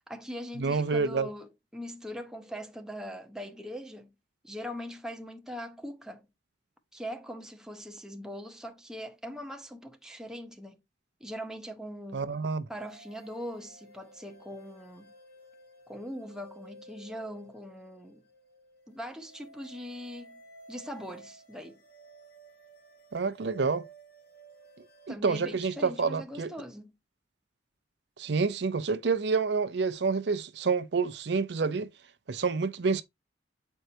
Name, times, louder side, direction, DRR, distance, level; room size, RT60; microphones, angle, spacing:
voice 1, 0.1-4.1 4.4-6.3 6.9-10.8 11.2-12.3 12.7-15.1 15.9-18.2 18.9-20.4 20.7-21.8 25.1-26.9, equal, 5° right, 0.7 m, -41 dB
voice 2, 0.6-1.3 12.1-12.6 23.1-23.8 25.1-26.5 28.2-31.9 32.3-33.0, right 4 dB, 65° right, 0.5 m, -28 dB
sound 1, 12.8-25.2, right 2 dB, 55° left, 2.1 m, -54 dB
7.9 x 4.5 x 2.7 m
head